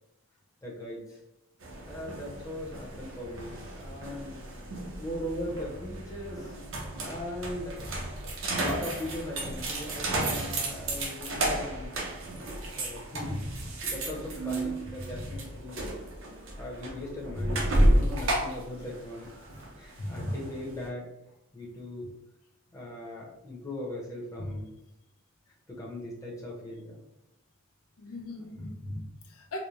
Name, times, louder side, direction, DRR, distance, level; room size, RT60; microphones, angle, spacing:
voice 1, 0.6-1.2 1.9-4.4 5.0-6.5 7.0-7.8 8.4-11.9 12.8-13.4 13.8-15.9 16.6-19.3 19.8-21.1 21.5-22.1 22.7-24.7 25.7-27.0, left 1 dB, 15° left, -4 dB, 0.7 m, -39 dB
sound 1, 1.6-20.8, right 1 dB, 60° right, 0.8 m, -32 dB
voice 2, 13.2-13.7 15.0-15.4 17.4-17.9 20.0-20.4 24.4-24.5 28.0-29.6, left 1 dB, 80° left, 1 dB, 0.7 m, -36 dB
4.0 x 2.1 x 3.0 m, 0.92 s
head